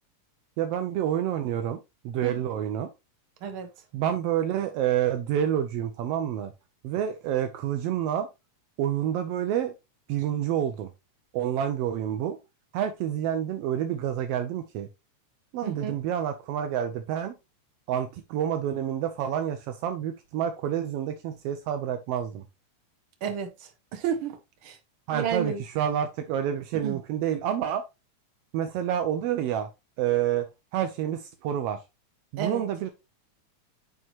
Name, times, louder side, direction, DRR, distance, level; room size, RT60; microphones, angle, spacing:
voice 1, 0.6-1.8 2.0-2.9 3.9-6.5 6.8-8.3 8.8-9.7 10.1-10.9 11.3-12.4 12.7-14.9 15.5-17.3 17.9-22.4 25.1-27.8 28.5-29.7 30.0-30.5 30.7-31.8 32.3-32.9, right 10 dB, 80° right, 1.4 m, -28 dB
voice 2, 15.6-16.0 23.2-24.4 24.6-24.8 25.1-25.6 26.7-27.0 32.4-32.6, right 7 dB, 60° right, 1.6 m, -31 dB
9.0 x 3.6 x 2.9 m
omnidirectional pair, 3.3 m